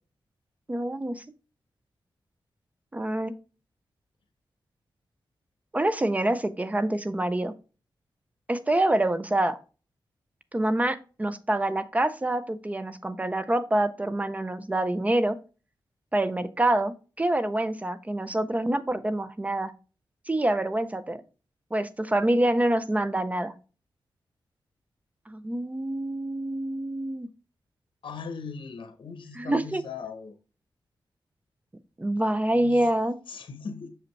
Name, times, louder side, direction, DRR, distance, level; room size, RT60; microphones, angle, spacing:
voice 1, 0.7-1.2 2.9-3.3 5.7-7.5 8.5-9.6 10.5-15.4 16.1-19.7 20.3-21.2 21.7-23.5 25.3-27.3 29.4-29.8 32.0-33.2, right 1 dB, 15° right, 0.5 m, -26 dB
voice 2, 28.0-30.4 32.5-32.9 33.3-33.9, left 5 dB, 70° left, 1.0 m, -39 dB
6.3 x 5.1 x 3.2 m
wide cardioid pair, 125°, 9 cm